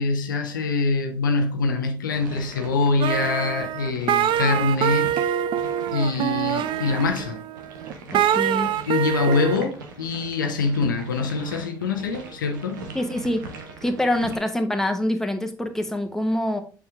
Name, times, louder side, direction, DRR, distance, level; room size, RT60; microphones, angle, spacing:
voice 1, 0.0-5.4 5.9-7.4 8.9-12.8, left 4 dB, 85° left, 0.7 m, -24 dB
sound 1, 2.1-14.4, right 3 dB, 80° right, 1.2 m, -41 dB
sound 2, 3.0-9.6, right 10 dB, 55° right, 0.5 m, -24 dB
voice 2, 8.1-8.7 12.9-13.4 13.8-16.6, left 1 dB, 5° left, 1.3 m, -25 dB
6.9 x 5.0 x 3.5 m
figure-of-eight pair, 50°, 10 cm